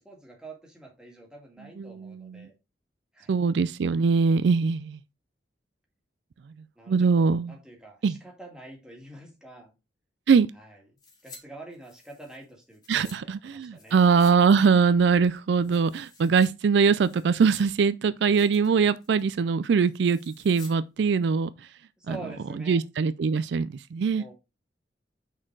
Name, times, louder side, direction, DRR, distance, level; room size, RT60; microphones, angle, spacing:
voice 1, 0.0-2.5 3.1-3.3 6.8-9.7 10.5-10.8 11.2-14.0 22.0-22.8 24.2-24.3, right 2 dB, 5° right, 2.1 m, -46 dB
voice 2, 1.8-2.5 3.3-5.0 6.9-7.6 8.0-8.2 10.3-10.5 12.9-21.5 22.1-22.2 22.7-24.2, right 5 dB, 70° right, 0.4 m, -22 dB
sound 1, 11.0-11.4 11.7-13.2 13.8-14.4 14.6-14.7 15.2-16.5 16.9-17.8 18.2-18.7 19.0-19.3 20.0-20.8 21.0-21.1, left 3 dB, 25° left, 1.9 m, -51 dB
6.1 x 4.4 x 4.6 m
head